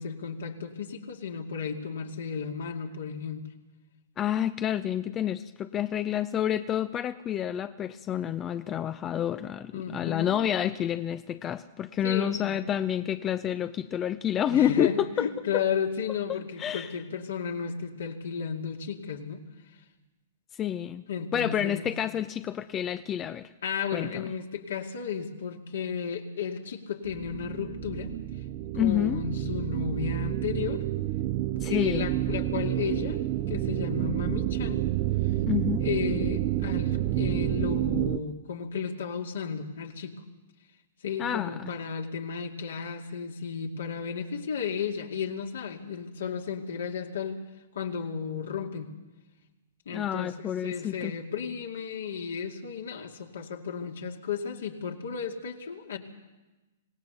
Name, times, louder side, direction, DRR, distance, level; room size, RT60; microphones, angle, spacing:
voice 1, 0.0-3.5 9.7-10.5 12.0-12.6 14.5-19.4 21.1-21.9 23.6-28.1 28.7-30.8 31.6-34.9 35.8-40.1 41.0-47.4 47.7-48.9 49.9-56.0, left 6 dB, 65° left, 3 dB, 2.4 m, -33 dB
voice 2, 4.2-15.3 16.6-16.9 20.6-21.0 21.3-23.5 23.9-24.2 28.8-29.2 31.6-32.1 35.5-35.9 41.2-41.8 49.9-51.1, left 10 dB, 25° left, 12 dB, 0.6 m, -29 dB
sound 1, 27.0-38.2, right 14 dB, 40° right, 0.9 m, -29 dB
25.5 x 18.5 x 6.9 m, 1.1 s
figure-of-eight pair, 115°, 0 cm